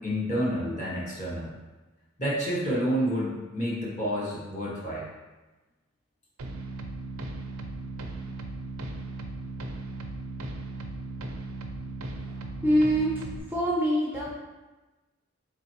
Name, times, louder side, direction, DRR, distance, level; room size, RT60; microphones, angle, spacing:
voice 1, 0.0-1.5 2.2-5.1, equal, 35° left, -5 dB, 0.9 m, -29 dB
sound 1, 6.4-13.4, right 2 dB, 75° right, 0.4 m, -37 dB
voice 2, 12.3-13.1 13.5-14.4, equal, 10° right, -5 dB, 0.4 m, -25 dB
3.8 x 3.2 x 2.9 m, 1.2 s
head